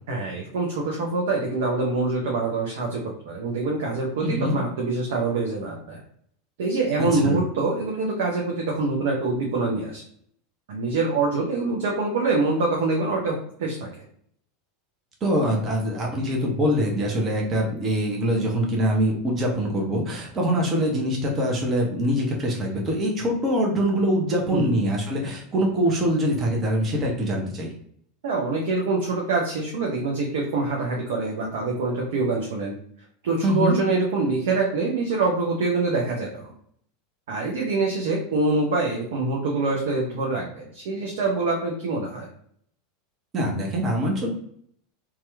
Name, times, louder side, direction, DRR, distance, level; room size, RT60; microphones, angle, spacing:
voice 1, 0.1-6.0 6.6-10.0 10.7-14.0 24.5-24.7 28.2-32.7 33.2-36.5 37.3-42.3, right 3 dB, 60° right, -1 dB, 0.6 m, -25 dB
voice 2, 4.2-4.5 7.0-7.4 15.2-27.7 33.4-33.8 43.3-44.3, equal, 30° right, -1 dB, 0.8 m, -24 dB
2.9 x 2.3 x 3.2 m, 0.66 s
figure-of-eight pair, 80°, 0 cm